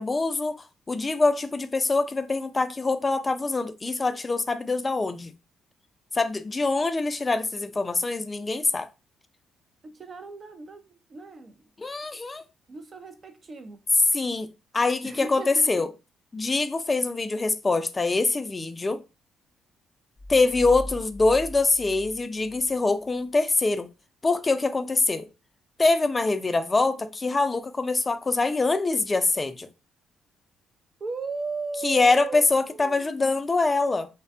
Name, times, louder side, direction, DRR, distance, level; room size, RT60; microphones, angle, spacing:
voice 1, 0.0-5.3 6.1-8.9 11.8-12.4 14.1-14.5 14.7-15.9 16.3-19.0 20.3-23.9 24.2-25.3 25.8-29.7 31.8-34.1, left 3 dB, 25° left, 0.3 m, -24 dB
voice 2, 9.8-11.7 12.7-13.8 15.0-15.8 31.0-32.4 32.7-33.4, right 4 dB, 45° right, 0.5 m, -37 dB
sound 1, 20.2-22.8, equal, 5° right, 0.7 m, -40 dB
2.5 x 2.1 x 2.4 m
supercardioid pair, 70°, 0 cm